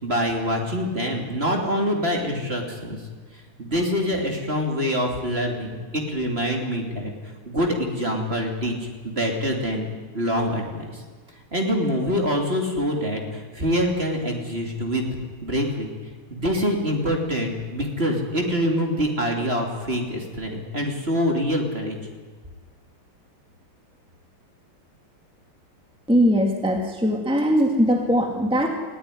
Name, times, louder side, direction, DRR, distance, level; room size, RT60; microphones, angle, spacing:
voice 1, 0.0-3.0 3.6-7.1 7.4-8.7 9.0-9.9 10.1-11.0 11.5-15.9 16.3-22.0, equal, 25° right, 1 dB, 3.1 m, -25 dB
voice 2, 26.1-28.7, equal, ahead, 2 dB, 2.1 m, -20 dB
20.0 x 16.0 x 9.9 m, 1.4 s
omnidirectional pair, 2.4 m